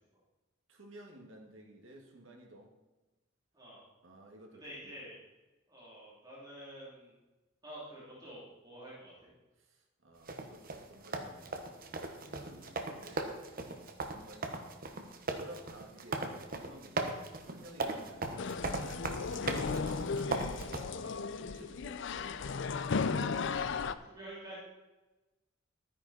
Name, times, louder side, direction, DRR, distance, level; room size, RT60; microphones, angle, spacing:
voice 1, 0.7-2.7 4.0-4.9 9.6-13.5 14.0-14.7 15.4-22.7, right 1 dB, 80° right, 1 dB, 2.1 m, -55 dB
voice 2, 3.5-3.8 4.6-5.2 5.7-7.1 7.6-9.3 23.6-24.6, right 1 dB, 20° right, -7 dB, 3.1 m, -49 dB
sound 1, 10.3-20.8, right 3 dB, 45° right, 1.2 m, -38 dB
sound 2, 18.4-24.0, left 5 dB, 65° left, 0.5 m, -35 dB
13.0 x 9.9 x 4.2 m, 1.1 s
head